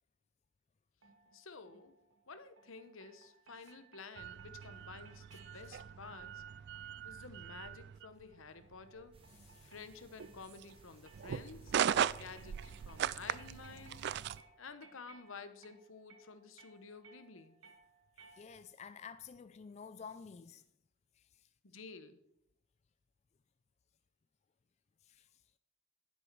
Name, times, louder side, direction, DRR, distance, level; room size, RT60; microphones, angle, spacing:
sound 1, 1.0-18.9, right 4 dB, 70° right, 2.0 m, -64 dB
voice 1, 1.3-1.9 2.3-6.4 7.0-9.2 9.6-11.8 12.1-14.0 14.6-17.6 21.6-22.2, left 4 dB, 75° left, 1.0 m, -52 dB
sound 2, 4.2-14.4, right 9 dB, 55° right, 0.3 m, -39 dB
voice 2, 5.3-5.6 9.5-9.7 18.3-20.6 21.2-21.5 25.0-25.4, left 6 dB, 35° left, 0.3 m, -51 dB
sound 3, 9.1-14.4, right 2 dB, 25° right, 1.7 m, -64 dB
11.0 x 10.0 x 4.6 m
head